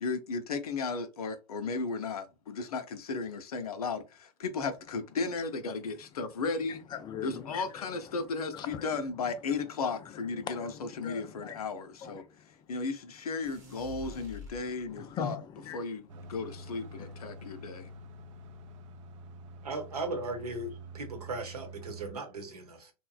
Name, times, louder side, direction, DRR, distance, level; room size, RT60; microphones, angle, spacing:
voice 1, 0.0-6.8 7.2-10.7 11.0-12.2 12.7-15.4 15.7-16.0 16.3-17.9, left 4 dB, 70° left, 0.5 m, -35 dB
voice 2, 5.7-6.4 6.7-11.7 12.0-12.9 13.9-17.4, left 8 dB, 20° left, 0.3 m, -44 dB
sound 1, 13.5-15.2, left 4 dB, 15° right, 0.8 m, -47 dB
sound 2, 16.1-22.1, right 1 dB, 55° right, 0.4 m, -47 dB
voice 3, 19.6-22.9, right 2 dB, 75° right, 0.9 m, -37 dB
3.1 x 2.1 x 2.3 m
figure-of-eight pair, 95°, 20 cm